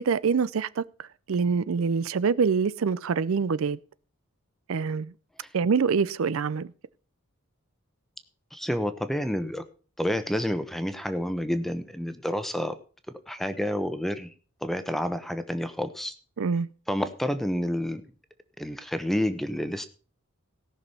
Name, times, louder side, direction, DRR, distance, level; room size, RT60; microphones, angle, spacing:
voice 1, 0.0-3.8 4.7-5.1 5.5-6.7 16.4-16.7, right 5 dB, 70° right, 0.4 m, -25 dB
voice 2, 8.5-9.6 10.0-12.7 13.3-14.3 14.6-16.1 16.9-18.0 18.6-19.9, equal, ahead, 0.9 m, -29 dB
17.5 x 6.1 x 5.5 m
head